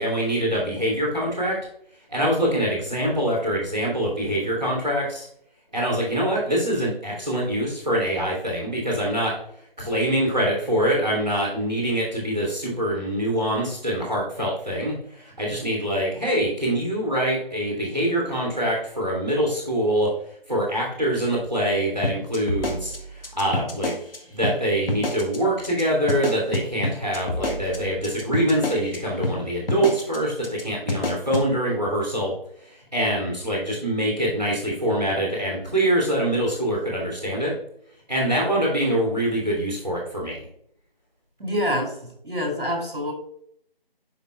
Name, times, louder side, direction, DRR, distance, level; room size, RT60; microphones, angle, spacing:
voice 1, 0.0-1.5 2.1-5.3 5.7-9.3 9.8-20.1 20.5-23.9 24.3-32.3 32.6-37.5 38.1-40.4, right 1 dB, 5° right, -15 dB, 1.2 m, -24 dB
sound 1, 22.0-24.2 24.4-24.6 24.9-25.4 25.6-25.8 26.1-29.0 29.2-29.4 29.7-30.2 30.4-30.6 30.9-31.5, left 1 dB, 70° left, 1.6 m, -27 dB
voice 2, 41.4-41.9 42.2-43.1, equal, 65° right, 3 dB, 2.5 m, -26 dB
11.0 x 3.8 x 2.3 m, 0.68 s
figure-of-eight pair, 170°, 29 cm